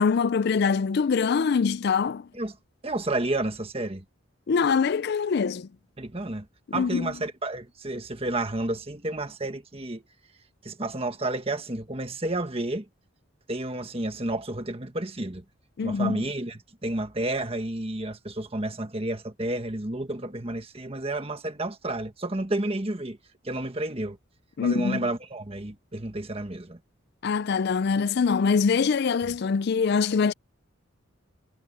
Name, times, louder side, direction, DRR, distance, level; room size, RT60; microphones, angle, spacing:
voice 1, 0.0-2.3 4.5-5.7 6.7-7.1 15.8-16.2 24.6-25.1 27.2-30.3, left 5 dB, 50° left, 0.4 m, -24 dB
voice 2, 2.8-4.0 6.0-6.5 6.7-10.0 10.6-12.9 13.5-15.4 15.8-23.2 23.4-24.2 24.6-26.8, right 2 dB, 25° right, 1.5 m, -31 dB
head